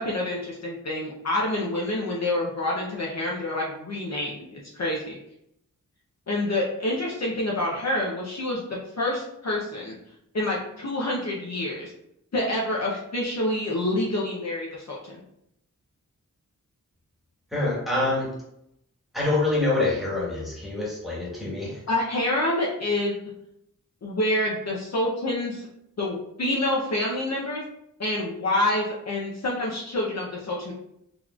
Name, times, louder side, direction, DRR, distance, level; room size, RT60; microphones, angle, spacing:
voice 1, 0.0-5.2 6.3-8.6 9.0-9.9 10.3-11.9 12.3-15.1 21.9-23.1 24.0-25.7 26.0-27.6 28.0-30.7, left 1 dB, 50° left, -4 dB, 0.7 m, -27 dB
voice 2, 17.5-18.3 19.1-21.8, left 2 dB, ahead, -7 dB, 1.5 m, -26 dB
4.0 x 3.0 x 2.3 m, 0.77 s
wide cardioid pair, 105°, 34 cm